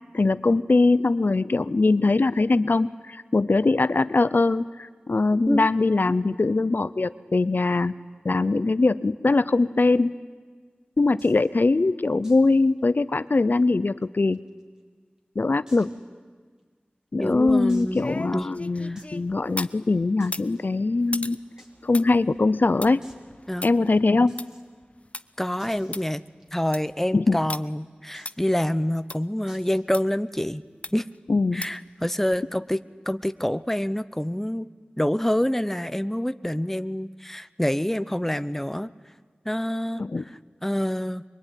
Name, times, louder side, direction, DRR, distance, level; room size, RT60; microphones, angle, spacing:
voice 1, 0.1-7.9 8.2-10.1 11.0-14.4 15.4-15.9 17.1-21.4 21.8-23.0 23.6-24.4 27.1-27.4 31.3-31.7 40.0-40.2, left 3 dB, 65° left, 15 dB, 0.7 m, -22 dB
sound 1, 11.2-11.5 12.2-12.5 12.8-12.9 13.3-13.4 14.0-14.8 15.7-16.0 16.6-16.7 17.7-18.2 19.0-19.2 20.2-20.6 21.6-21.7 22.0-22.1 22.3-22.4 23.0-23.2 24.3-24.6 25.6-26.7 28.1-28.5 29.5-29.9, equal, 20° right, 4.7 m, -53 dB
voice 2, 17.2-18.0 18.3-18.5 18.8-19.0 23.5-23.7 25.4-26.2 26.5-30.6 30.9-31.1 31.5-34.7 35.0-38.9 39.4-40.0 40.6-41.2, left 1 dB, 10° left, 13 dB, 0.9 m, -26 dB
sound 2, 17.3-19.8 20.2-25.2 25.6-25.7 25.9-26.0 26.5-26.9 27.5-27.6 28.3-28.4 29.1-29.2 29.9-30.0 30.8-31.2 31.6-31.9 32.3-32.4, left 2 dB, 40° left, 0.9 m, -38 dB
24.5 x 23.5 x 10.0 m, 1.5 s
wide cardioid pair, 50°, 3 cm